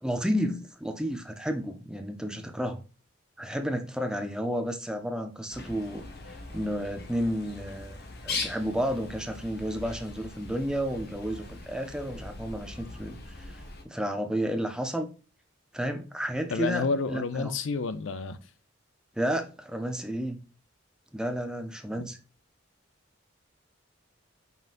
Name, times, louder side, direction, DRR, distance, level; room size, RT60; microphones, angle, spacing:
voice 1, 0.0-2.8 3.4-6.1 6.5-8.0 8.2-13.5 13.8-15.1 15.7-17.5 19.2-20.4 21.1-22.2, equal, 5° right, 0.6 m, -31 dB
Bird, 5.5-13.8, left 3 dB, 55° left, 1.1 m, -40 dB
voice 2, 16.5-18.4, left 4 dB, 75° left, 0.5 m, -29 dB
5.5 x 3.8 x 2.5 m
head